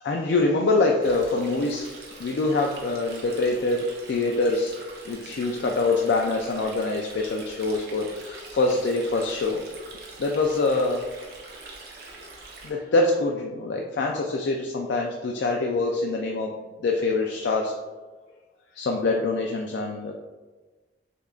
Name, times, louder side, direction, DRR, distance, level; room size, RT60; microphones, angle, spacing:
voice 1, 0.0-1.9 2.2-4.7 5.1-9.6 10.2-11.1 12.6-16.5 16.8-17.7 18.8-20.1, left 3 dB, 70° left, 1 dB, 0.4 m, -25 dB
Stream, 1.0-12.7, right 3 dB, 60° right, 0.8 m, -44 dB
6.4 x 2.5 x 2.4 m, 1.3 s
head